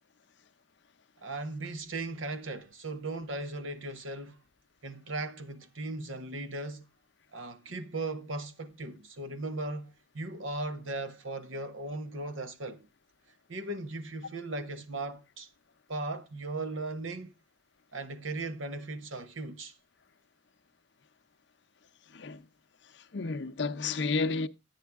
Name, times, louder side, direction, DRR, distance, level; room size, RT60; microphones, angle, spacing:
voice 1, 1.2-4.4 4.8-6.8 7.3-12.9 13.5-15.5 15.9-17.3 17.9-19.7, right 2 dB, 85° right, 1.3 m, -37 dB
voice 2, 22.1-22.4 23.1-24.5, left 4 dB, 60° left, 0.6 m, -31 dB
11.0 x 9.3 x 3.5 m
head